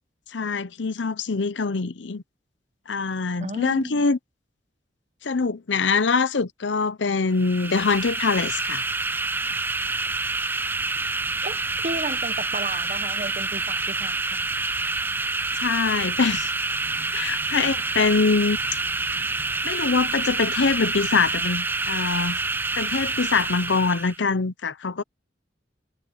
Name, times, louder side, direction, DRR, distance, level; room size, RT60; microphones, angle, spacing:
voice 1, 0.3-2.2 2.9-4.2 5.2-8.8 15.6-16.5 17.1-18.6 19.6-22.4 22.8-25.0, left 4 dB, 80° left, 0.7 m, -24 dB
voice 2, 3.4-4.1 11.4-14.4 17.6-17.7, right 2 dB, 40° right, 1.4 m, -33 dB
sound 1, 7.3-24.2, right 3 dB, 10° right, 0.4 m, -27 dB
head